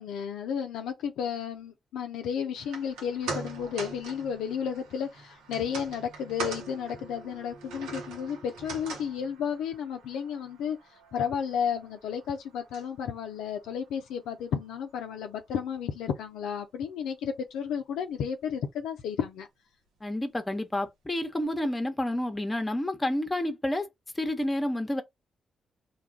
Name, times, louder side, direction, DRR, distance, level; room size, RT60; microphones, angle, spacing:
voice 1, 0.0-10.8 11.1-19.5, left 7 dB, 80° left, 0.4 m, -32 dB
sound 1, 2.6-14.9 15.3-15.4, right 4 dB, 80° right, 0.8 m, -43 dB
voice 2, 20.0-23.9 24.2-25.0, left 1 dB, 20° left, 0.8 m, -29 dB
2.3 x 2.3 x 3.4 m
hypercardioid pair, 40°, 0 cm